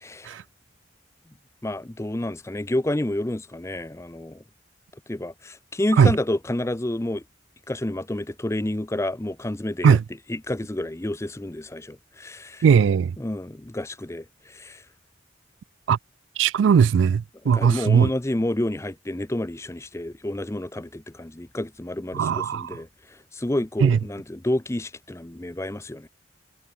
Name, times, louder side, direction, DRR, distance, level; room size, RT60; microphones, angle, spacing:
voice 1, 0.0-0.4 1.6-4.4 5.1-7.2 7.7-10.0 10.3-12.6 13.2-14.8 17.5-26.1, left 1 dB, 15° left, 0.6 m, -29 dB
voice 2, 12.6-13.2 15.9-16.0 16.4-18.1 22.1-22.7 23.8-24.0, right 7 dB, 85° right, 0.3 m, -18 dB
head